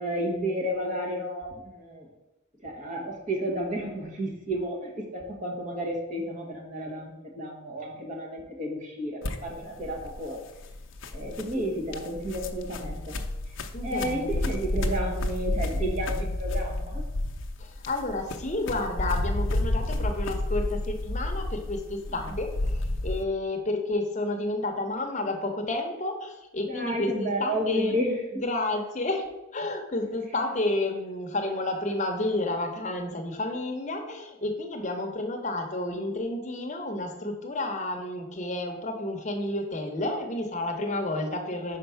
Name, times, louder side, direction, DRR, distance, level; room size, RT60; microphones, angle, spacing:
voice 1, 0.0-2.1 2.6-10.4 11.1-13.2 13.8-17.1 22.1-22.4 26.6-28.2, equal, 35° right, 0 dB, 1.3 m, -32 dB
sound 1, 9.2-23.2, left 1 dB, 65° left, 0.6 m, -31 dB
voice 2, 13.7-14.3 17.6-28.0 28.4-41.8, left 2 dB, 35° left, 4 dB, 0.8 m, -31 dB
5.1 x 4.4 x 5.6 m, 0.99 s
head